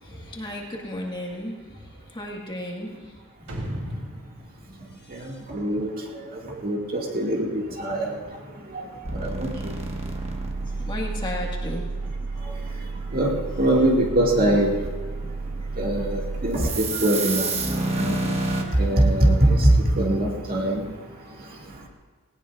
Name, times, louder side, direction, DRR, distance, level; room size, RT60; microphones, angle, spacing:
voice 1, 0.0-1.8 2.1-3.0 3.4-3.5 10.8-11.9, left 1 dB, 20° left, -1 dB, 1.8 m, -34 dB
sound 1, 3.5-6.0, equal, 90° right, 3.4 m, -36 dB
voice 2, 5.5-5.9 6.6-8.2 8.7-8.8 9.2-9.5 13.1-14.7 15.8-17.5 18.0-18.1 18.8-20.8, right 1 dB, 45° right, -1 dB, 2.1 m, -21 dB
sound 2, 9.0-18.6, right 3 dB, 30° right, 1.4 m, -30 dB
18.5 x 18.0 x 2.5 m, 1.4 s
head